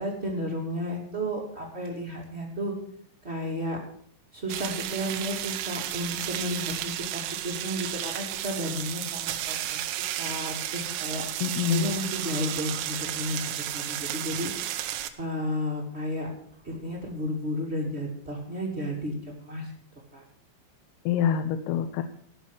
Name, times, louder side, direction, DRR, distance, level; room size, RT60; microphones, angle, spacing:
voice 1, 0.0-2.7 3.2-3.8 4.3-9.9 10.2-11.2 11.7-14.9 15.2-16.3 16.6-19.7 20.1-20.2, equal, 30° right, -2 dB, 1.1 m, -33 dB
sound 1, 4.5-15.1, right 12 dB, 85° right, 3.6 m, -33 dB
voice 2, 11.4-11.9 21.1-22.0, left 8 dB, 85° left, 8 dB, 3.5 m, -26 dB
15.5 x 6.4 x 8.3 m, 0.64 s
omnidirectional pair, 5.8 m